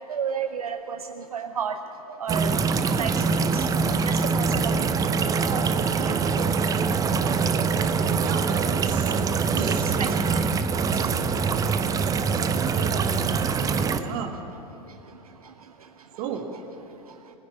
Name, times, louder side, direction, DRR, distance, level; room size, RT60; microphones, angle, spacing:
voice 1, 0.0-1.8 2.2-3.7 4.1-4.7 5.5-5.7 6.0-6.5 9.5-10.1 10.7-11.1 12.4-13.0, right 7 dB, 75° right, 8 dB, 0.6 m, -33 dB
sound 1, 2.3-14.0, right 5 dB, 20° right, 0.6 m, -24 dB
voice 2, 8.1-9.1 9.5-9.8 11.6-11.7 12.4-12.5 13.8-14.4 14.8-15.0 16.2-16.5, right 8 dB, 45° right, 6 dB, 1.6 m, -35 dB
21.0 x 9.6 x 7.1 m, 2.9 s
figure-of-eight pair, 90°, 19 cm